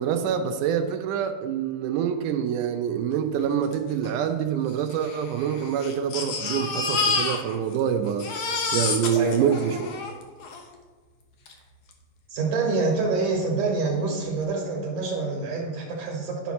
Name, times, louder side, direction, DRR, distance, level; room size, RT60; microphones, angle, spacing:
voice 1, 0.0-9.9, right 8 dB, 85° right, 1.8 m, -26 dB
Crying sobbing, 3.7-3.8 4.0-4.1 4.9-10.6 11.5-11.6 11.9-12.0, left 4 dB, 75° left, 1.4 m, -29 dB
voice 2, 9.2-9.6 12.3-16.5, right 3 dB, 65° right, 2.5 m, -26 dB
11.5 x 5.8 x 4.2 m
omnidirectional pair, 4.4 m